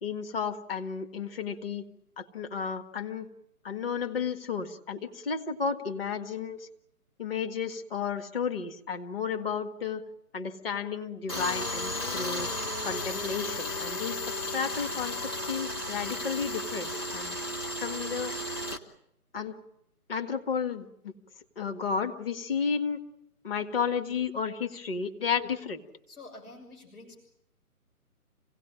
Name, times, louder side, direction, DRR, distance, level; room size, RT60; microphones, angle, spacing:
voice 1, 0.0-1.8 2.2-3.3 3.6-6.7 7.2-10.0 10.3-12.5 12.8-17.4 17.8-18.3 19.3-19.6 20.1-21.1 21.6-23.0 23.4-25.8, left 6 dB, 40° left, 5 dB, 1.8 m, -32 dB
Tools, 11.3-18.8, left 1 dB, 15° left, 0.8 m, -34 dB
voice 2, 26.1-27.2, left 2 dB, 70° left, 3 dB, 6.1 m, -48 dB
26.5 x 17.0 x 8.9 m, 0.79 s
figure-of-eight pair, 150°, 46 cm